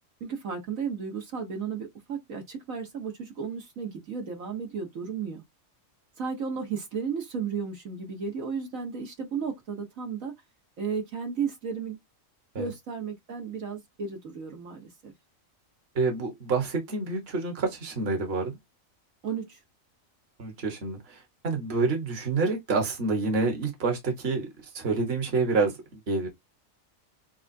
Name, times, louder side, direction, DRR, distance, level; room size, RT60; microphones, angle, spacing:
voice 1, 0.2-5.4 6.2-10.3 10.8-12.0 12.6-15.1 19.2-19.6, right 6 dB, 75° right, 1.8 m, -34 dB
voice 2, 15.9-18.6 20.4-21.0 21.4-24.5 24.7-25.7 26.1-26.3, right 4 dB, 50° right, 1.6 m, -27 dB
7.0 x 2.4 x 2.7 m
omnidirectional pair, 1.4 m